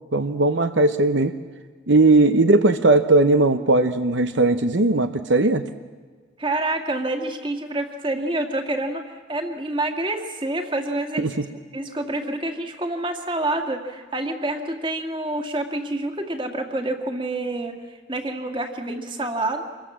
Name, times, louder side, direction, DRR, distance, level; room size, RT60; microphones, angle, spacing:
voice 1, 0.1-1.3 1.9-5.6 11.2-11.4, right 2 dB, 70° right, 9 dB, 0.8 m, -18 dB
voice 2, 6.4-11.3 11.7-19.6, right 2 dB, 25° right, 5 dB, 2.1 m, -27 dB
26.5 x 22.5 x 7.5 m, 1.5 s
head